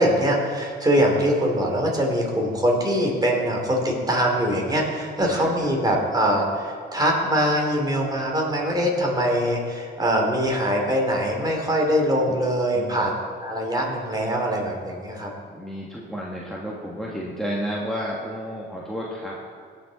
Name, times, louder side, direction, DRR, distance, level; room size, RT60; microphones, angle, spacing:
voice 1, 0.0-13.1 13.4-15.3, equal, 20° right, -1 dB, 2.9 m, -23 dB
voice 2, 5.2-5.5 12.3-12.4 12.7-13.0 15.5-19.4, equal, ahead, -5 dB, 1.6 m, -31 dB
18.0 x 6.5 x 4.1 m, 2.1 s
cardioid pair, 90°, 20 cm